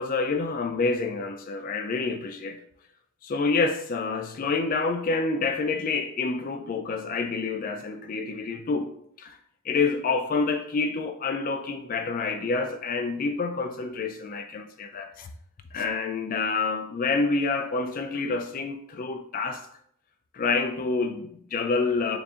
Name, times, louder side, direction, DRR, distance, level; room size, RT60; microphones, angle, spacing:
voice 1, 0.0-2.6 3.2-8.9 9.2-9.3 9.7-15.3 15.7-19.6 20.3-22.2, left 4 dB, 40° left, 0.3 m, -28 dB
6.7 x 2.6 x 2.4 m
head